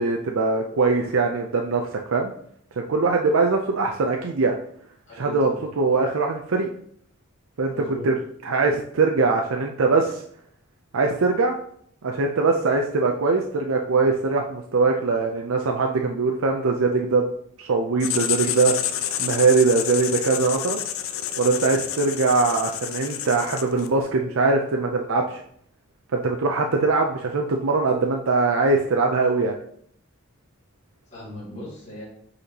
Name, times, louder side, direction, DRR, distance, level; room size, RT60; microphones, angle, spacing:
voice 1, 0.0-2.3 2.8-4.5 5.2-5.5 5.8-6.7 7.6-7.7 8.0-8.2 8.4-10.2 10.9-11.6 12.0-17.3 17.6-20.8 21.4-25.4 26.1-29.5, right 3 dB, 80° right, 2 dB, 0.5 m, -22 dB
voice 2, 5.1-5.5 7.7-8.1 31.1-32.0, left 1 dB, 35° left, -7 dB, 2.4 m, -38 dB
Writing, 18.0-24.0, left 10 dB, 75° left, 0.5 m, -29 dB
8.1 x 4.2 x 2.9 m, 0.65 s
head